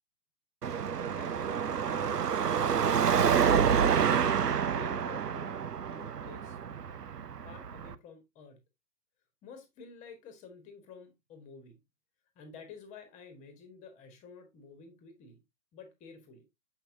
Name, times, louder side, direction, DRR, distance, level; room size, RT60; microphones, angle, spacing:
Car passing by / Traffic noise roadway noise / Engine, 0.6-7.9, right 7 dB, 70° right, 0.8 m, -28 dB
voice 1, 1.1-3.3 3.7-4.3 4.7-6.6 7.4-8.6 9.4-11.8 12.3-15.4 15.7-16.4, left 4 dB, 15° left, 1.4 m, -51 dB
7.3 x 5.8 x 2.7 m
figure-of-eight pair, 125°, 48 cm